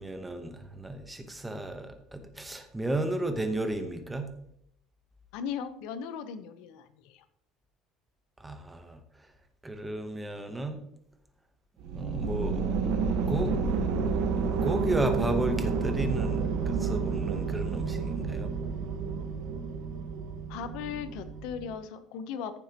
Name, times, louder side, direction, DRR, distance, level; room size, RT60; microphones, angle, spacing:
voice 1, 0.0-4.3 8.4-9.0 9.6-10.8 11.9-12.7 13.3-13.6 14.6-18.5, right 2 dB, 10° right, 7 dB, 0.9 m, -33 dB
voice 2, 5.3-7.2 20.5-22.6, left 7 dB, 75° left, 11 dB, 0.8 m, -38 dB
sound 1, 11.8-21.8, right 5 dB, 70° right, 1.2 m, -30 dB
14.5 x 7.2 x 2.9 m, 0.73 s
cardioid pair, 160°, 0 cm